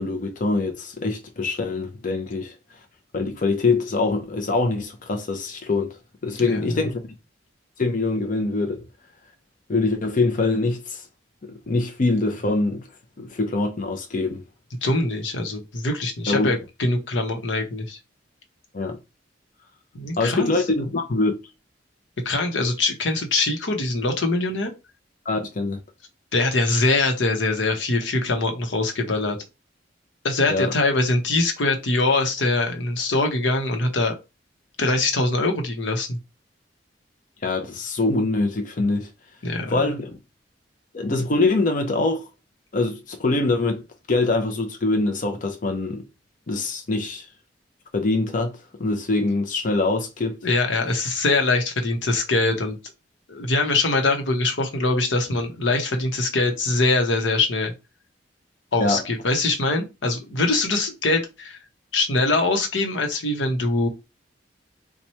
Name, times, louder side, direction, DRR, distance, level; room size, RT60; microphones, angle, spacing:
voice 1, 0.0-2.5 3.1-7.0 7.8-8.8 9.7-11.0 11.4-12.8 13.2-14.4 16.3-16.5 18.7-19.0 20.2-21.3 25.3-25.8 30.5-30.7 37.4-39.1 39.7-40.2 40.9-42.3 42.7-43.8 44.1-46.1 46.5-47.3 47.9-48.5 48.8-50.4 58.8-59.0, left 3 dB, 45° left, 0.6 m, -24 dB
voice 2, 6.4-6.8 14.8-18.0 19.9-20.5 22.2-24.7 26.3-29.4 30.2-34.2 34.8-36.2 39.4-39.8 50.4-52.8 53.3-57.7 58.7-61.6 61.9-63.9, left 2 dB, 85° left, 0.9 m, -23 dB
3.0 x 2.2 x 4.2 m
head